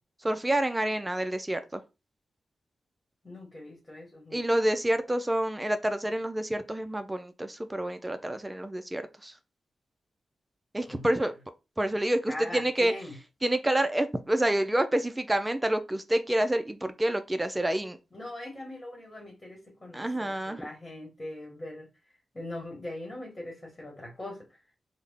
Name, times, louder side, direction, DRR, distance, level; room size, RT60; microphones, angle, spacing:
voice 1, 0.2-1.8 4.3-9.4 10.7-11.3 11.8-12.9 13.4-18.0 19.9-20.6, right 1 dB, 15° right, 9 dB, 0.4 m, -28 dB
voice 2, 3.2-4.4 10.9-11.1 12.3-13.1 18.1-21.9 22.3-24.5, left 1 dB, 25° left, 1 dB, 1.3 m, -41 dB
3.6 x 2.1 x 3.4 m, 0.28 s
cardioid pair, 70°, 0 cm